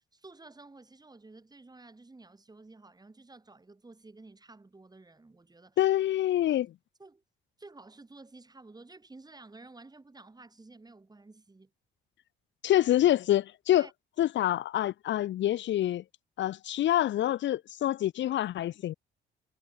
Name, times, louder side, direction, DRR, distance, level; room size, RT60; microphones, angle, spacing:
voice 1, 0.0-5.8 7.0-7.2 7.6-11.7 13.8-13.9, right 3 dB, 20° right, 6.0 m, -52 dB
voice 2, 5.8-6.7 12.6-13.9 14.2-16.0 16.4-18.9, left 13 dB, 70° left, 0.7 m, -26 dB
cardioid pair, 90°, 20 cm